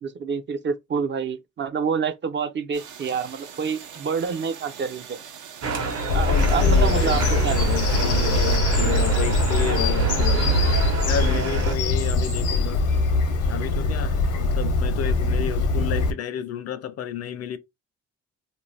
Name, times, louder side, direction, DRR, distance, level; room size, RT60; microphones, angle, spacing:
voice 1, 0.0-5.2 6.1-7.6, right 6 dB, 40° right, 0.4 m, -27 dB
sound 1, 2.7-8.6, right 7 dB, 80° right, 0.6 m, -42 dB
sound 2, 5.6-11.8, right 4 dB, 60° right, 0.9 m, -29 dB
Bird vocalization bird call bird song, 6.1-16.1, left 2 dB, 80° left, 0.8 m, -22 dB
voice 2, 6.3-10.4 11.0-12.8 13.5-17.6, left 9 dB, 55° left, 0.5 m, -31 dB
2.5 x 2.1 x 3.2 m
cardioid pair, 90°, 30 cm